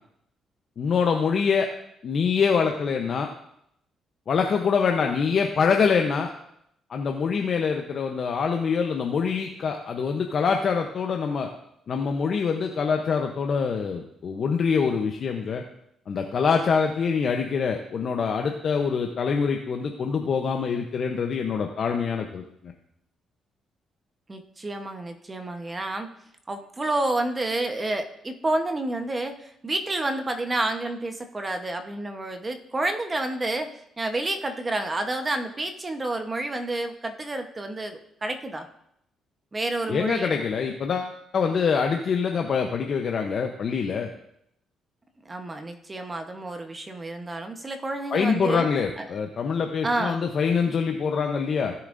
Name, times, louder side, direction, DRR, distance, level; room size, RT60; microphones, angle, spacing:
voice 1, 0.8-1.7 2.0-3.3 4.3-6.3 6.9-11.5 11.9-15.6 16.1-22.4 39.9-44.1 48.1-51.7, left 6 dB, 55° left, 3 dB, 0.8 m, -25 dB
voice 2, 24.3-26.1 26.5-38.7 39.5-40.4 45.2-48.7 49.0-49.1 49.8-50.2, right 2 dB, 25° right, 6 dB, 1.0 m, -29 dB
16.5 x 7.1 x 2.6 m, 0.75 s
cardioid pair, 90°, 0 cm